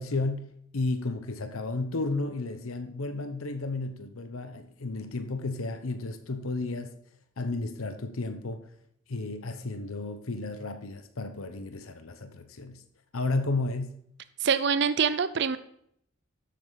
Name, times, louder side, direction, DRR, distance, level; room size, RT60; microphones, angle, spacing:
voice 1, 0.0-6.9 7.4-8.6 9.1-12.8 13.1-14.0, left 2 dB, 85° left, 0.9 m, -33 dB
voice 2, 14.4-15.6, right 6 dB, 55° right, 0.5 m, -25 dB
12.0 x 7.6 x 4.0 m
head